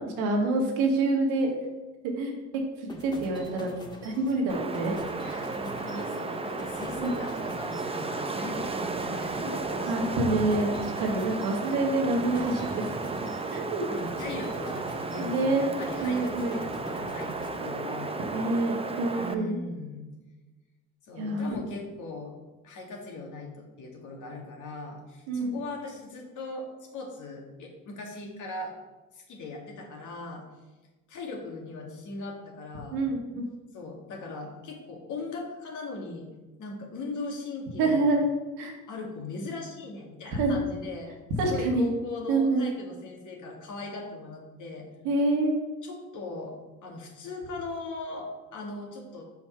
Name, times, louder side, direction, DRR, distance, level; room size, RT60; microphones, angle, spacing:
voice 1, 0.2-1.5 2.2-2.3 2.8-3.7 4.0-5.0 5.3-5.4 7.0-7.1 7.4-7.5 9.9-13.1 13.5-13.8 15.2-15.7 16.0-16.6 18.3-19.6 21.2-21.5 25.3-25.6 32.9-33.5 37.8-38.3 38.6-38.7 40.3-40.6 41.4-41.9 42.3-42.7 45.0-45.6, right 2 dB, 75° right, 0 dB, 1.8 m, -27 dB
sound 1, 2.9-18.2, left 1 dB, 10° left, 1.8 m, -44 dB
Wind, 4.5-19.3, right 3 dB, 15° right, 0.7 m, -34 dB
voice 2, 5.2-10.2 13.9-18.6 19.1-20.1 21.0-22.3 22.6-28.7 29.1-30.4 31.1-33.0 33.7-36.3 36.6-38.1 38.9-41.1 41.4-44.9 45.8-49.2, left 3 dB, 55° left, 0 dB, 2.1 m, -39 dB
5.7 x 5.2 x 5.7 m, 1.2 s
hypercardioid pair, 65°, 36 cm